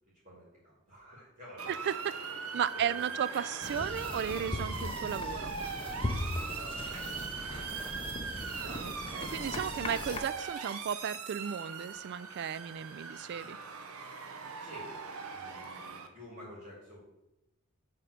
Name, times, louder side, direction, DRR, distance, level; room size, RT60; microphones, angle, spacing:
voice 1, 0.2-1.8 2.9-3.0 3.5-3.6 6.5-7.7 8.6-9.1 14.6-17.0, equal, 35° right, -6 dB, 2.5 m, -51 dB
Motor vehicle (road) / Siren, 1.6-16.1, right 5 dB, 75° right, 0.9 m, -40 dB
voice 2, 1.7-2.1 2.5-5.5 8.6-13.6, right 8 dB, 50° right, 17 dB, 0.3 m, -35 dB
sound 1, 3.6-10.2, left 2 dB, 25° left, 0.7 m, -39 dB
7.7 x 3.8 x 6.6 m, 0.91 s
head